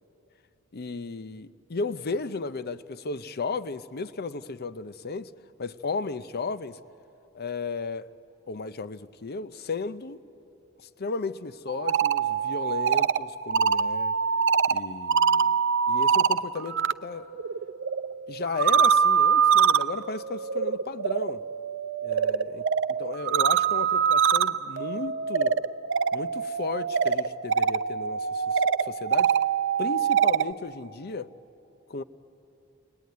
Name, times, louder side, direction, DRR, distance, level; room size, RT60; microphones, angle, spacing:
voice 1, 0.7-5.3 5.6-6.8 7.3-8.1 8.5-10.2 11.0-14.2 14.7-15.6 15.9-17.3 18.3-21.4 22.0-22.7 23.0-25.6 26.1-29.3 29.8-31.3 31.9-32.0, left 4 dB, 50° left, 0.7 m, -34 dB
sound 1, 11.7-16.9 17.2-30.5, right 7 dB, 60° right, 0.5 m, -24 dB
30.0 x 21.0 x 9.4 m
head